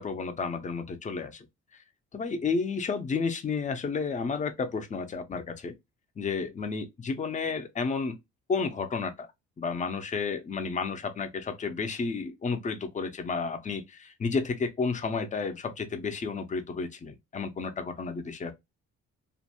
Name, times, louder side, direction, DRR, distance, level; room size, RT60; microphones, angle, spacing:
voice 1, 0.0-1.5 2.1-5.7 6.2-8.2 8.5-9.3 9.6-18.5, left 4 dB, 25° left, 0.5 m, -31 dB
2.5 x 2.2 x 2.8 m
cardioid pair, 90°, 30 cm